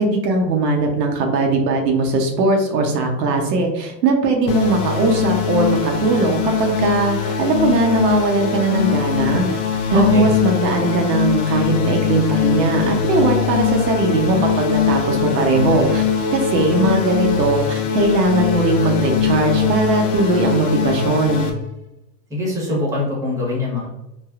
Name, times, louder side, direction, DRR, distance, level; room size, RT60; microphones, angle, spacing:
voice 1, 0.0-9.6 9.9-16.0 16.3-21.5, right 2 dB, 80° right, 2 dB, 0.8 m, -19 dB
sound 1, 4.5-21.5, left 7 dB, 40° left, 0.5 m, -21 dB
voice 2, 9.9-10.2 22.3-23.9, left 2 dB, 5° right, -4 dB, 1.0 m, -23 dB
3.2 x 2.2 x 2.3 m, 0.91 s
hypercardioid pair, 110°, 49 cm